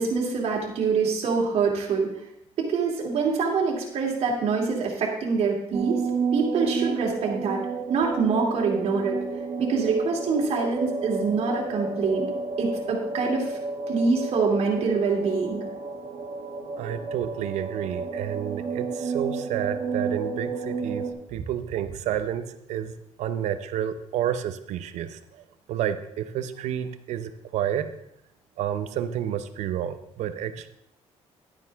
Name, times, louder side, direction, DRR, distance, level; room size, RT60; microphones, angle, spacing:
voice 1, 0.0-2.1 2.6-6.0 6.3-7.6 7.9-9.2 9.6-12.3 12.6-13.6 13.9-15.6, right 4 dB, 65° right, -1 dB, 2.9 m, -25 dB
sound 1, 5.7-21.1, right 4 dB, 45° right, 1.9 m, -31 dB
voice 2, 16.8-27.9 28.6-30.7, right 10 dB, 90° right, 11 dB, 0.8 m, -30 dB
12.0 x 9.1 x 3.6 m, 0.76 s
cardioid pair, 125°, 11 cm